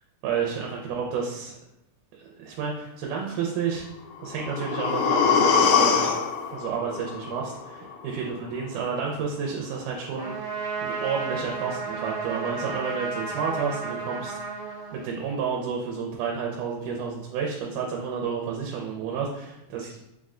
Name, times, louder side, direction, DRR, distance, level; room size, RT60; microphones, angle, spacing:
voice 1, 0.2-1.6 2.2-3.9 4.2-6.1 6.5-14.6 14.9-19.9, right 6 dB, 85° right, -1 dB, 2.1 m, -31 dB
sound 1, 4.1-8.1 8.4-8.5, left 6 dB, 90° left, 2.2 m, -24 dB
Trumpet, 10.2-15.4, right 4 dB, 65° right, 2.2 m, -33 dB
5.0 x 2.1 x 3.6 m, 0.91 s
omnidirectional pair, 3.6 m